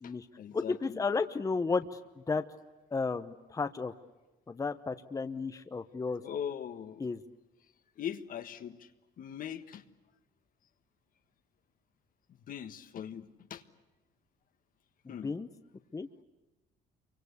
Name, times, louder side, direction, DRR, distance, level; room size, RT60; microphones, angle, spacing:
voice 1, 0.0-1.0 5.8-5.9 6.2-7.1 8.0-8.9 9.2-9.8 12.3-13.6 15.1-15.3, left 9 dB, 55° left, 9 dB, 1.5 m, -41 dB
voice 2, 0.5-2.4 2.9-3.9 4.5-6.2 7.0-7.2 15.0-15.5 15.9-16.1, left 4 dB, 20° left, 9 dB, 1.0 m, -33 dB
28.0 x 24.5 x 8.3 m, 1.1 s
cardioid pair, 110°, 17 cm